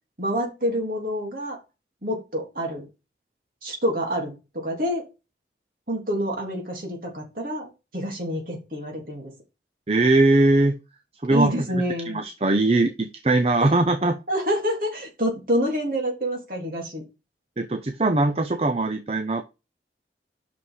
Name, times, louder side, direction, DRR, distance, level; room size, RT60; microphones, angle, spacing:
voice 1, 0.2-1.6 2.0-2.9 3.6-5.1 5.9-9.3 11.3-12.2 14.3-17.0, equal, 50° right, 0 dB, 3.1 m, -27 dB
voice 2, 9.9-10.8 11.2-11.5 12.0-14.2 17.6-19.4, right 2 dB, 35° right, 8 dB, 0.6 m, -21 dB
6.2 x 5.7 x 5.6 m, 0.27 s
head